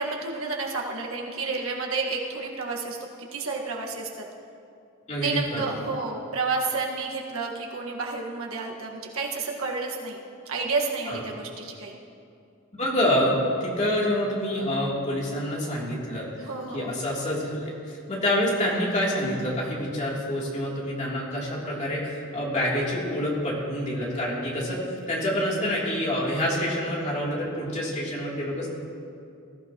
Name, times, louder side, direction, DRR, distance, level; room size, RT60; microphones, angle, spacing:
voice 1, 0.0-3.0 3.3-4.2 5.2-12.0 16.4-17.0, right 4 dB, 70° right, -1 dB, 1.7 m, -30 dB
voice 2, 5.1-5.7 11.1-11.2 12.8-16.3 16.7-17.7 18.1-24.8 25.1-28.7, equal, 35° left, -5 dB, 3.2 m, -27 dB
20.0 x 14.5 x 3.0 m, 2.5 s
head